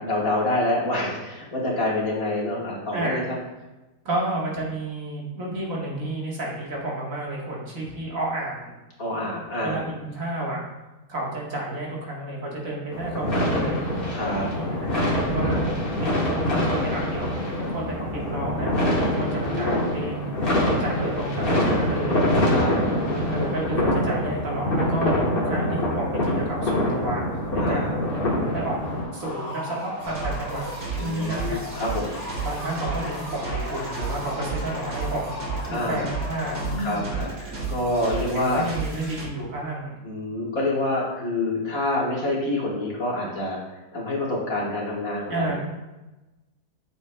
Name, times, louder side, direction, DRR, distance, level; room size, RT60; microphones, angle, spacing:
voice 1, 0.0-3.2 9.0-9.9 14.1-14.5 19.0-20.0 22.4-23.1 27.6-27.9 31.0-32.2 35.7-36.1 36.8-38.6 40.0-45.5, left 1 dB, 60° left, -5 dB, 2.0 m, -27 dB
voice 2, 2.9-3.2 4.1-8.7 9.6-10.6 11.1-13.8 14.2-15.6 16.0-17.3 17.6-20.3 20.8-22.2 23.3-27.2 27.5-28.0 28.5-28.8 29.1-30.6 31.0-31.6 32.4-37.1 38.3-40.0 45.3-45.5, right 2 dB, 55° right, -4 dB, 1.9 m, -31 dB
sound 1, 12.9-29.0, left 1 dB, 40° left, 1.3 m, -25 dB
sound 2, 28.8-37.1, left 2 dB, 80° left, 1.8 m, -37 dB
sound 3, 30.0-39.2, right 4 dB, 90° right, 2.1 m, -33 dB
7.9 x 7.0 x 2.2 m, 1.1 s
omnidirectional pair, 1.7 m